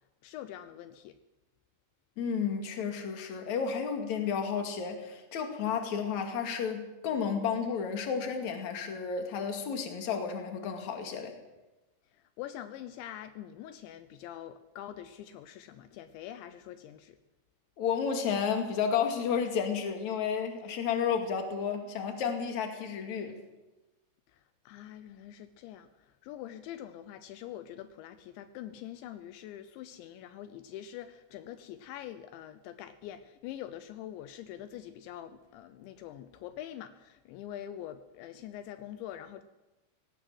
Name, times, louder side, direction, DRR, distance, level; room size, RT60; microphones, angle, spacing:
voice 1, 0.2-1.2 12.1-17.2 24.3-39.4, left 11 dB, 80° left, 11 dB, 3.1 m, -44 dB
voice 2, 2.2-11.3 17.8-23.4, left 6 dB, 45° left, 4 dB, 3.2 m, -32 dB
19.0 x 17.5 x 7.9 m, 1.1 s
omnidirectional pair, 5.3 m